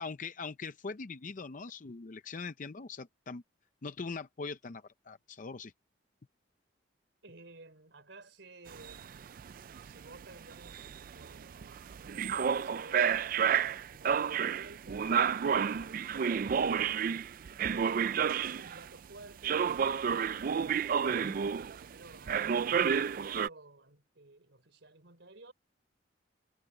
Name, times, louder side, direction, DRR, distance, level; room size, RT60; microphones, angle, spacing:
voice 1, 0.0-3.4 3.8-5.7 21.1-21.4, left 4 dB, 45° left, 0.6 m, -42 dB
voice 2, 7.2-9.2 9.8-15.1 15.6-20.4 21.0-25.5, right 2 dB, 70° right, 3.6 m, -55 dB
sound 1, 8.7-18.9 19.4-21.9 22.3-23.5, right 7 dB, 50° right, 0.3 m, -30 dB
head